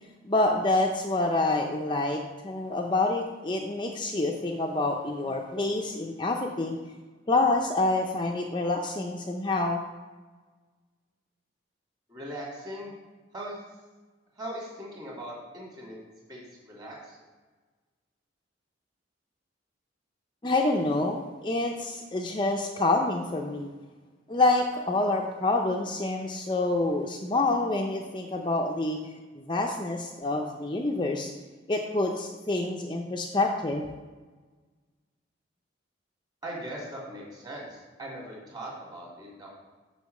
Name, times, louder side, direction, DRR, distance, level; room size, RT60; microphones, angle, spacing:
voice 1, 0.3-6.8 7.3-9.8 20.4-23.7 24.3-29.0 29.4-31.3 31.7-33.9, left 2 dB, 25° left, 1 dB, 0.5 m, -27 dB
voice 2, 12.1-12.9 13.3-13.6 14.4-16.0 16.3-17.2 36.4-39.5, right 1 dB, 20° right, -4 dB, 2.3 m, -40 dB
6.8 x 5.5 x 6.4 m, 1.3 s
head